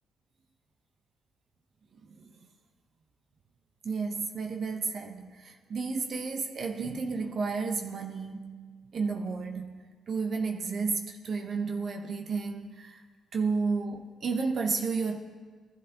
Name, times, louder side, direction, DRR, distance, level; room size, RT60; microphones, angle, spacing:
voice 1, 1.9-2.3 3.8-8.5 8.9-13.0 13.3-15.2, right 4 dB, 55° right, 0.8 m, -32 dB
18.5 x 12.0 x 2.9 m
cardioid pair, 90°, 0 cm